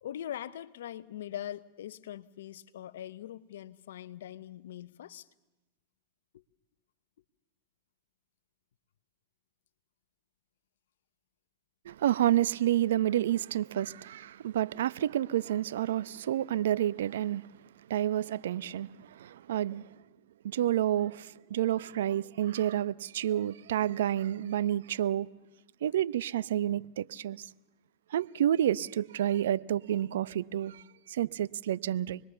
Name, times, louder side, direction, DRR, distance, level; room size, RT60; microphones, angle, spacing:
voice 1, 0.0-5.3 6.3-6.4, left 11 dB, 80° left, 1.0 m, -42 dB
voice 2, 11.8-17.5 17.9-19.9 20.4-25.3 25.8-27.5 28.1-32.2, right 12 dB, 80° right, 0.7 m, -29 dB
27.0 x 21.5 x 6.9 m
hypercardioid pair, 105°, 0 cm